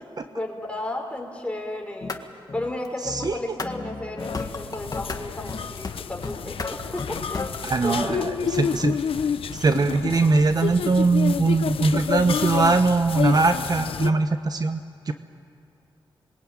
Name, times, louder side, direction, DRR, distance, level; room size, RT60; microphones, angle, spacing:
voice 1, 0.0-2.2 2.5-7.5 7.8-8.2, left 1 dB, 15° left, 1 dB, 5.2 m, -33 dB
sound 1, 2.0-2.2 2.5-5.2 5.5-5.9 6.2-7.8, left 3 dB, 40° left, 1.9 m, -33 dB
voice 2, 3.0-3.4 7.6-9.0 9.5-15.1, right 3 dB, 45° right, 8 dB, 1.0 m, -21 dB
sound 2, 4.2-14.1, left 7 dB, 80° left, 0.8 m, -29 dB
26.5 x 22.0 x 9.0 m, 2.7 s
cardioid pair, 80°, 9 cm